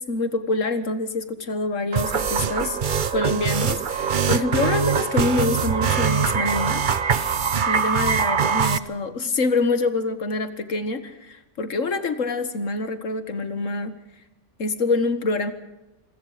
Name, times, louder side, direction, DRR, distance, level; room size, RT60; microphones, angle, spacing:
voice 1, 0.0-2.8 3.1-6.8 7.7-14.0 14.6-15.5, left 3 dB, 85° left, 10 dB, 2.0 m, -26 dB
sound 1, 1.9-8.8, right 6 dB, 45° right, 1.0 m, -23 dB
26.5 x 22.0 x 5.1 m, 1.0 s
omnidirectional pair, 1.3 m